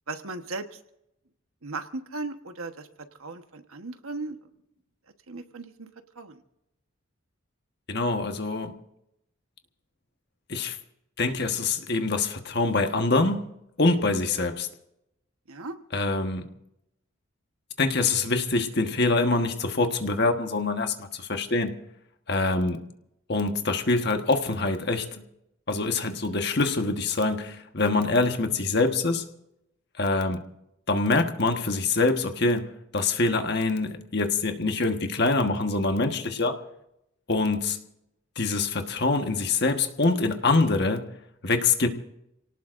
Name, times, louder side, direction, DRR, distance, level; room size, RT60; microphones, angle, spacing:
voice 1, 0.1-0.8 1.6-2.9 3.2-4.4 5.3-5.9 6.2-6.4 15.5-15.8, right 3 dB, 85° right, 7 dB, 1.3 m, -36 dB
voice 2, 7.9-8.7 10.5-10.8 11.2-13.4 13.8-14.7 15.9-16.5 17.8-21.7 22.3-22.8 23.3-25.2 25.7-29.2 30.0-30.4 30.9-32.7 32.9-36.6 37.3-37.8 38.4-41.0 41.4-41.9, left 3 dB, 50° left, 5 dB, 1.4 m, -25 dB
28.5 x 18.5 x 2.6 m, 0.83 s
head